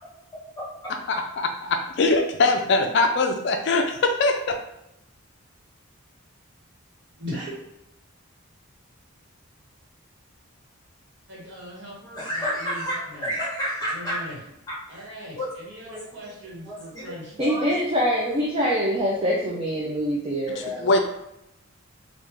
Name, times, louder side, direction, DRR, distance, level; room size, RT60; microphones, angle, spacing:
voice 1, 0.6-1.2 12.2-14.2 14.7-14.8 15.4-15.5 15.9-16.0 16.6-17.0 17.4-17.6, equal, 20° left, -6 dB, 1.1 m, -30 dB
voice 2, 1.4-4.6 20.5-21.0, left 3 dB, 55° left, 4 dB, 0.3 m, -22 dB
voice 3, 7.2-7.6 11.3-13.3 13.9-14.4 14.9-17.4, equal, 55° right, -6 dB, 1.4 m, -39 dB
voice 4, 17.4-20.9, equal, 25° right, -3 dB, 0.4 m, -24 dB
3.2 x 2.4 x 3.5 m, 0.86 s
head